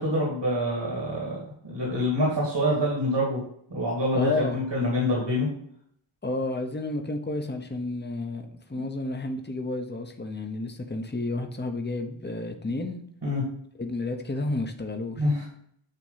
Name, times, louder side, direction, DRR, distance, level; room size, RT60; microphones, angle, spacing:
voice 1, 0.0-3.4 3.7-5.5 13.2-13.4 15.2-15.4, equal, 60° right, -4 dB, 2.3 m, -26 dB
voice 2, 4.1-4.6 6.2-13.0 13.8-15.3, left 2 dB, 20° left, 5 dB, 0.9 m, -31 dB
9.2 x 3.1 x 5.6 m, 0.67 s
wide cardioid pair, 50°, 48 cm